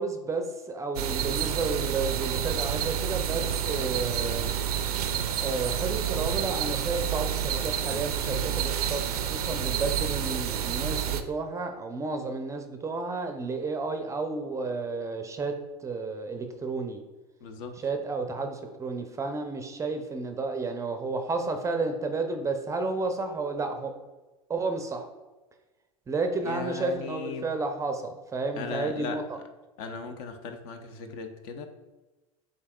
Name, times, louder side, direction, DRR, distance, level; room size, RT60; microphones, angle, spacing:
voice 1, 0.0-4.5 5.4-17.0 17.8-23.9 24.5-25.1 26.1-29.2, right 3 dB, 15° right, 5 dB, 0.5 m, -32 dB
sound 1, 1.0-11.2, right 9 dB, 80° right, 0.4 m, -29 dB
voice 2, 17.4-17.7 26.4-27.5 28.5-29.4 29.8-31.7, left 5 dB, 55° left, 6 dB, 0.7 m, -37 dB
8.0 x 2.8 x 2.3 m, 1.1 s
hypercardioid pair, 90°, 19 cm